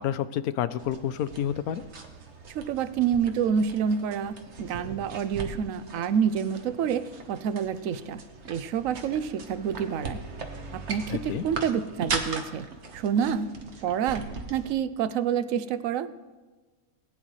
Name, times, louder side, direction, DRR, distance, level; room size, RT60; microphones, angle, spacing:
voice 1, 0.0-1.8 11.1-11.4, left 10 dB, 80° left, 14 dB, 1.1 m, -29 dB
sound 1, 0.8-14.7, right 4 dB, 50° right, 1.4 m, -39 dB
voice 2, 2.5-8.2 8.5-10.2 10.7-12.7 12.9-13.5 13.8-16.1, right 7 dB, 70° right, 13 dB, 1.0 m, -28 dB
19.5 x 9.8 x 3.2 m, 1.3 s
omnidirectional pair, 1.5 m